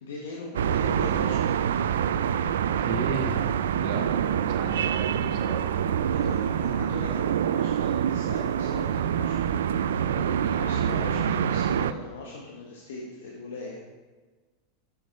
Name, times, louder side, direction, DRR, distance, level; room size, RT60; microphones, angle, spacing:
voice 1, 0.0-1.6 6.0-13.8, left 2 dB, 80° left, -3 dB, 1.3 m, -40 dB
sound 1, 0.5-11.9, right 9 dB, 80° right, 0.3 m, -26 dB
voice 2, 2.5-3.5 3.8-5.7 6.1-6.2, right 4 dB, 60° right, 2 dB, 1.5 m, -34 dB
6.8 x 6.3 x 4.7 m, 1.3 s
hypercardioid pair, 100°, 0 cm